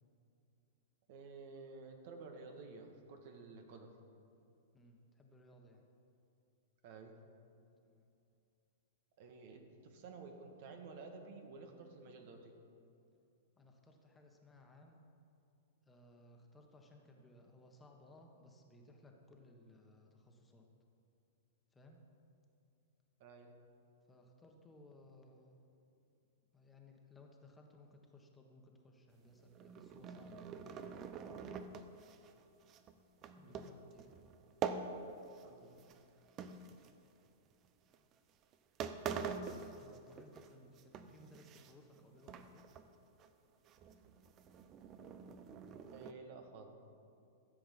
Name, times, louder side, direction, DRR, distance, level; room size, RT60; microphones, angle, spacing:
voice 1, 1.1-3.9 6.8-7.1 9.2-12.6 23.2-23.5 33.4-33.7 35.4-35.8 45.9-46.7, right 4 dB, 55° right, 4 dB, 1.6 m, -52 dB
voice 2, 4.7-5.8 7.8-8.1 13.6-15.1 15.8-20.7 21.7-22.0 24.1-25.7 26.5-31.5 33.2-34.3 38.0-38.1 39.7-42.7, left 1 dB, 15° left, 2 dB, 1.5 m, -61 dB
sound 1, 29.4-35.5 35.8-37.3 37.9-38.1 38.5-38.6 38.8-40.5 40.8-42.0 42.3-42.9 43.2-43.3 43.7-46.1, right 6 dB, 35° right, 0.8 m, -45 dB
14.5 x 7.7 x 5.5 m, 2.6 s
hypercardioid pair, 105°, 0 cm